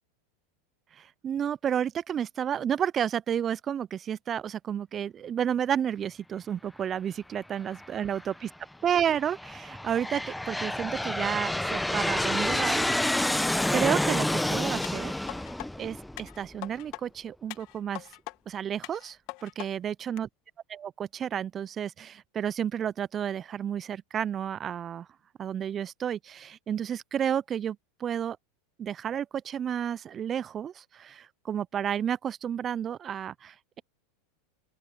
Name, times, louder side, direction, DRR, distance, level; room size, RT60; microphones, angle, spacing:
voice 1, 0.9-8.5 8.8-13.3 13.7-15.1 15.8-18.1 18.5-20.3 20.7-25.1 25.4-28.4 28.8-33.8, right 9 dB, 30° right, 0.7 m, -31 dB
Aircraft, 7.7-8.3 9.0-16.5, left 1 dB, 5° left, 1.2 m, -29 dB
sound 1, 14.8-15.7 16.2-17.0 17.5-18.4 18.8-19.7 20.2-20.3, left 26 dB, 55° left, 2.5 m, -41 dB
open air
hypercardioid pair, 90°, 0 cm